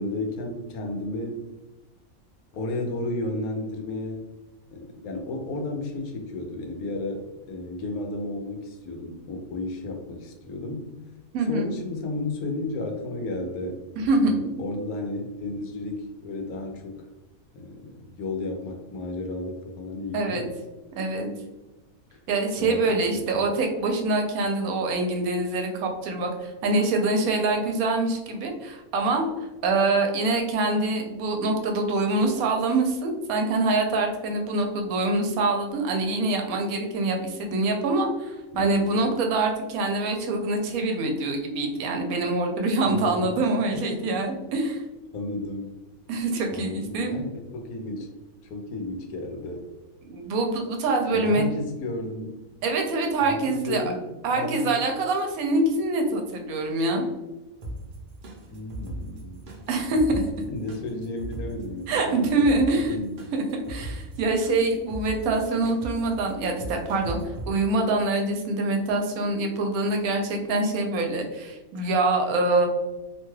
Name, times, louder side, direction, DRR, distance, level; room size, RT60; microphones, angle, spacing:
voice 1, 0.0-1.4 2.5-4.3 4.7-10.9 11.4-13.8 14.2-17.0 17.5-20.6 22.1-22.3 22.6-23.5 38.5-38.9 42.8-43.4 43.7-43.9 45.1-45.7 46.5-48.1 48.5-49.7 51.1-52.4 53.2-54.1 54.3-54.9 58.5-59.6 60.5-62.1 62.7-63.2, left 2 dB, 85° left, 3 dB, 1.1 m, -33 dB
voice 2, 11.3-11.7 14.0-14.4 20.1-20.4 21.0-21.3 22.3-29.3 29.6-44.8 46.1-47.2 50.0-51.4 52.6-53.8 54.2-57.0 59.7-60.2 61.9-62.9 63.3-72.7, right 2 dB, 80° right, 3 dB, 1.0 m, -25 dB
sound 1, 57.6-67.5, right 1 dB, 55° right, 0.6 m, -38 dB
2.8 x 2.2 x 3.1 m, 1.1 s
omnidirectional pair, 1.5 m